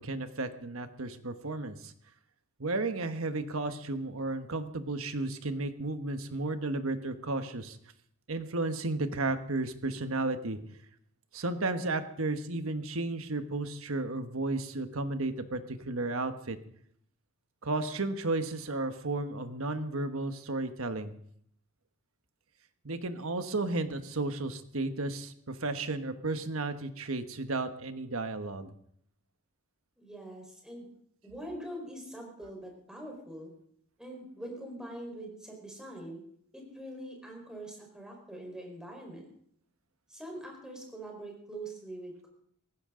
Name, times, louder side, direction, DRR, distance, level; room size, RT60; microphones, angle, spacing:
voice 1, 0.0-1.9 2.6-7.8 8.3-10.6 11.3-16.6 17.6-21.1 22.8-28.7, right 2 dB, 75° right, 9 dB, 1.3 m, -33 dB
voice 2, 30.0-30.9 31.2-33.5 34.0-36.2 36.5-39.3 40.1-42.3, right 1 dB, 5° right, 0 dB, 4.4 m, -43 dB
18.0 x 15.5 x 3.8 m, 0.67 s
head